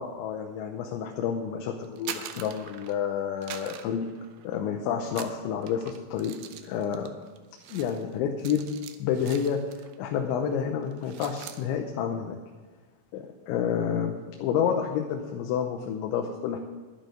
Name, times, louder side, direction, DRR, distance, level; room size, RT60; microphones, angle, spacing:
voice 1, 0.0-4.1 4.4-6.3 6.6-7.1 7.7-8.7 9.0-9.6 10.0-12.4 13.1-16.6, left 8 dB, 90° left, 3 dB, 3.2 m, -29 dB
sound 1, 1.8-3.1 3.4-4.7 5.1-10.0 10.3-10.5 10.8-11.6, right 10 dB, 80° right, 2.6 m, -43 dB
11.5 x 11.0 x 5.1 m, 1.4 s
omnidirectional pair, 5.2 m